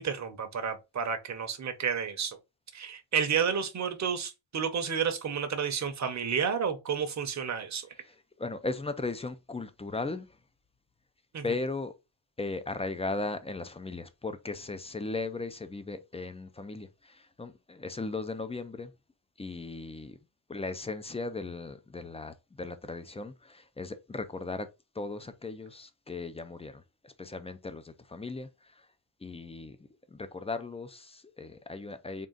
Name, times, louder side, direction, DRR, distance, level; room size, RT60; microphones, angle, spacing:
voice 1, 0.0-2.4 2.7-7.9 11.3-11.4, right 7 dB, 40° right, 0.8 m, -31 dB
voice 2, 8.0-10.4 11.4-11.9 12.4-18.9 19.4-20.2 20.5-24.7 24.9-28.9 29.2-29.8 30.1-32.3, left 3 dB, 15° left, 0.3 m, -37 dB
3.7 x 2.4 x 3.8 m
wide cardioid pair, 115°, 45 cm